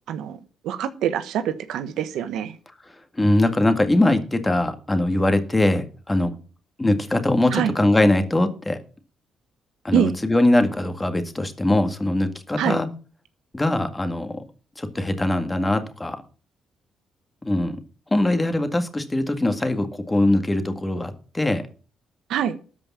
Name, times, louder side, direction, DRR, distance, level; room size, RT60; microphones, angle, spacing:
voice 1, 0.1-0.4 0.6-2.6 7.5-7.7 9.9-10.2 12.6-12.8 22.3-22.5, right 9 dB, 80° right, 12 dB, 1.1 m, -24 dB
voice 2, 3.2-6.3 6.8-8.8 9.8-12.9 13.5-14.4 14.8-16.2 17.4-17.8 18.1-21.6, left 1 dB, 15° left, 8 dB, 1.9 m, -21 dB
13.0 x 5.2 x 8.5 m, 0.38 s
cardioid pair, 90°, 0 cm